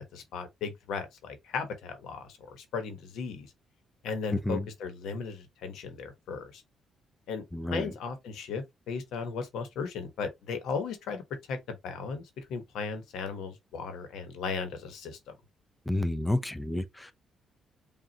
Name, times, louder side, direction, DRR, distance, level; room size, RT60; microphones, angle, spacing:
voice 1, 0.0-3.5 4.0-6.6 7.3-7.4 7.7-11.2 11.5-15.2, left 5 dB, 80° left, 1.1 m, -36 dB
voice 2, 4.3-4.7 7.5-7.9 15.9-17.1, left 1 dB, 10° left, 0.5 m, -30 dB
5.2 x 2.5 x 2.8 m
cardioid pair, 90°, 0 cm